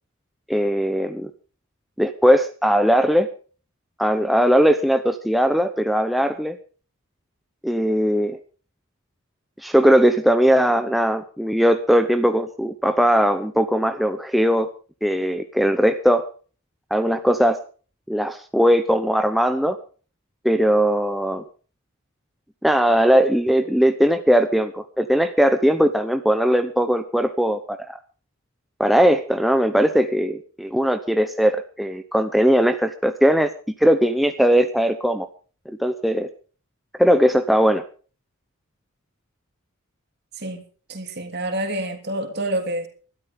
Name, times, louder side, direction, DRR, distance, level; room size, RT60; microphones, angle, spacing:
voice 1, 0.5-1.3 2.0-3.3 4.0-6.6 7.6-8.4 9.6-14.7 15.0-16.3 16.9-17.6 18.1-19.8 20.4-21.4 22.6-28.0 28.8-33.5 33.8-35.3 35.8-36.3 37.0-37.8, equal, ahead, 0.7 m, -19 dB
voice 2, 40.9-42.9, right 1 dB, 50° right, 3.1 m, -27 dB
20.5 x 12.5 x 3.7 m
head